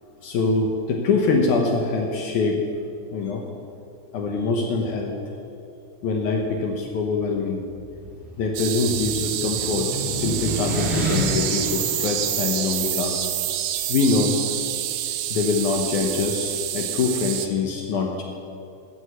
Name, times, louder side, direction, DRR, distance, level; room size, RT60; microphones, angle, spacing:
voice 1, 0.2-2.6 3.1-3.4 4.1-5.1 6.0-7.6 8.4-13.3 13.9-14.4 15.3-18.2, left 4 dB, 70° left, 1 dB, 2.2 m, -24 dB
sound 1, 7.7-12.9, right 1 dB, 5° right, 2.5 m, -30 dB
sound 2, 8.5-17.5, right 12 dB, 90° right, 1.5 m, -28 dB
13.0 x 6.3 x 8.0 m, 2.5 s
omnidirectional pair, 3.8 m